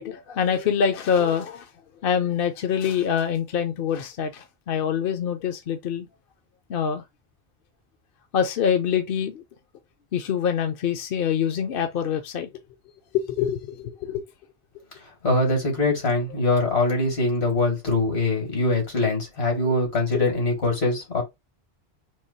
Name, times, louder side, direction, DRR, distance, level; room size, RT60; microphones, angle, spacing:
voice 1, 0.0-1.7 2.0-6.1 6.7-7.0 8.3-9.4 10.1-12.5 13.1-14.2 19.6-19.8 20.1-20.3, left 8 dB, 65° left, 0.8 m, -25 dB
voice 2, 15.2-21.2, left 2 dB, 85° left, 2.4 m, -23 dB
3.8 x 2.9 x 4.0 m
omnidirectional pair, 1.0 m